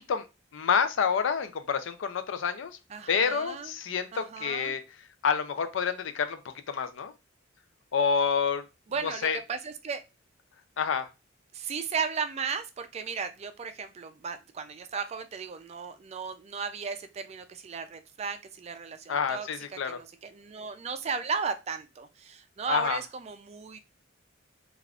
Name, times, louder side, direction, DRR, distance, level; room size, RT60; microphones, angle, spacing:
voice 1, 0.5-2.8 3.1-4.8 5.2-6.4 6.7-7.1 7.9-8.6 9.0-9.4 10.8-11.1 19.1-20.0 22.7-23.0, left 6 dB, 70° left, 0.4 m, -28 dB
voice 2, 2.9-3.7 4.1-4.8 8.9-10.0 11.5-19.5 19.9-23.8, right 5 dB, 35° right, 0.3 m, -35 dB
3.4 x 2.4 x 2.3 m
head